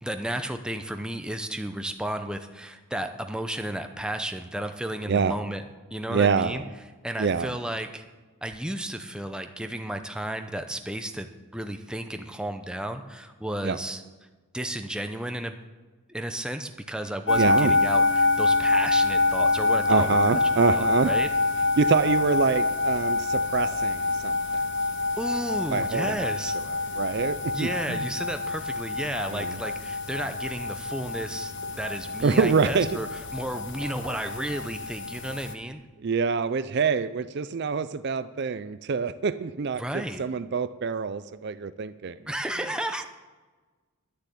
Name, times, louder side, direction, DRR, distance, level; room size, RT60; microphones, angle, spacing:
voice 1, 0.0-5.6 5.9-6.6 7.0-8.0 8.4-14.0 14.5-15.6 16.1-20.4 20.7-21.3 25.2-26.5 27.5-35.8 39.8-40.2 42.3-43.0, right 1 dB, 5° right, 6 dB, 0.6 m, -33 dB
voice 2, 6.1-6.6 7.2-7.5 13.6-13.8 17.4-17.7 19.9-21.1 21.8-24.4 25.7-26.3 27.0-28.0 29.3-29.6 32.2-33.0 36.0-42.2, right 5 dB, 50° right, 13 dB, 0.4 m, -26 dB
sound 1, 17.3-35.5, left 3 dB, 55° left, 0.8 m, -26 dB
11.5 x 6.6 x 8.4 m, 1.3 s
head